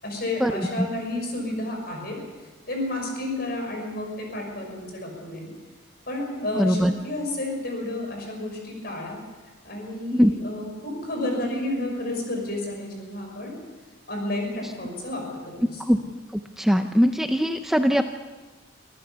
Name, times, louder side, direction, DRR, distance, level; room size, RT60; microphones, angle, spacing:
voice 1, 0.0-2.2 2.7-5.5 6.1-13.6 14.1-15.8, left 1 dB, 50° left, 1 dB, 6.1 m, -31 dB
voice 2, 6.5-6.9 10.1-10.3 15.9-16.0 16.6-18.0, equal, ahead, 6 dB, 0.5 m, -20 dB
25.5 x 14.5 x 7.0 m, 1.3 s
head